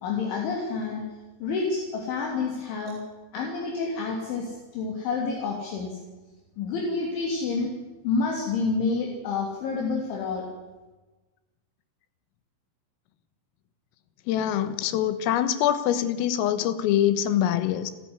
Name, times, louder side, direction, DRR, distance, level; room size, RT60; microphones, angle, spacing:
voice 1, 0.0-1.0 1.4-3.0 3.3-6.0 6.6-7.7 8.0-10.5, left 4 dB, 65° left, 5.3 m, -28 dB
voice 2, 14.3-17.9, left 11 dB, 80° left, 3.9 m, -24 dB
29.5 x 13.5 x 9.8 m
omnidirectional pair, 5.9 m